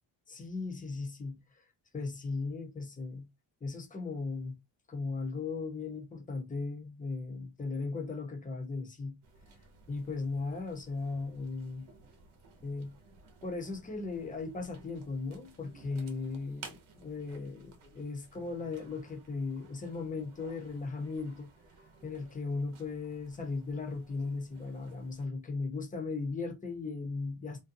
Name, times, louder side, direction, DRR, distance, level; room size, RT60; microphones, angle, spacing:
voice 1, 0.3-1.6 1.9-3.3 3.6-4.6 4.9-9.2 9.9-11.9 12.6-12.9 13.4-16.7 16.9-21.5 22.0-27.6, left 3 dB, 15° left, 0.7 m, -37 dB
sound 1, 9.2-25.3, right 4 dB, 75° right, 0.8 m, -56 dB
2.6 x 2.2 x 2.6 m
cardioid pair, 105°, 50 cm